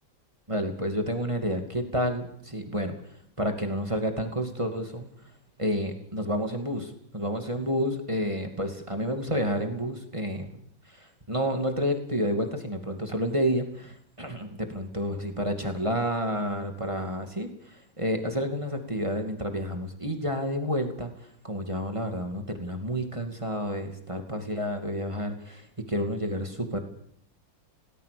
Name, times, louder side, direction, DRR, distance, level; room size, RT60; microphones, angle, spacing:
voice 1, 0.5-2.9 3.4-5.1 5.6-10.5 10.9-21.1 21.4-26.8, equal, 15° right, 5 dB, 2.5 m, -30 dB
29.0 x 18.5 x 6.9 m, 0.69 s
omnidirectional pair, 2.1 m